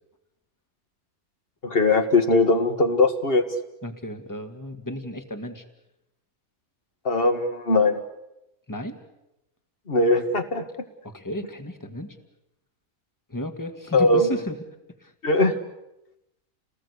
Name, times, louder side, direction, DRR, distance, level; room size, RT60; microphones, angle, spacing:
voice 1, 1.6-3.4 7.0-8.0 9.9-10.6 13.9-14.3 15.2-15.6, left 2 dB, 40° left, 7 dB, 2.0 m, -20 dB
voice 2, 3.8-5.6 8.7-9.0 11.0-12.2 13.3-14.6 15.0-15.1, left 1 dB, 15° left, 7 dB, 2.0 m, -34 dB
30.0 x 19.5 x 8.4 m, 0.90 s
omnidirectional pair, 1.5 m